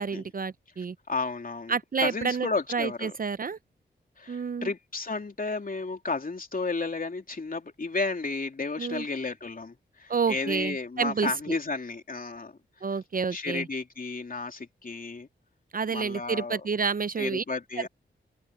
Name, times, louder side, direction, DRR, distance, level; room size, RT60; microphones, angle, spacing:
voice 1, 0.0-0.9 1.7-3.6 4.3-4.7 8.8-9.0 10.1-11.3 12.8-13.7 15.7-17.4, right 5 dB, 45° right, 0.6 m, -29 dB
voice 2, 0.8-3.2 4.2-12.6 13.3-15.3 15.9-16.6 17.2-17.9, left 3 dB, 45° left, 3.2 m, -33 dB
cardioid pair, 55°, 20 cm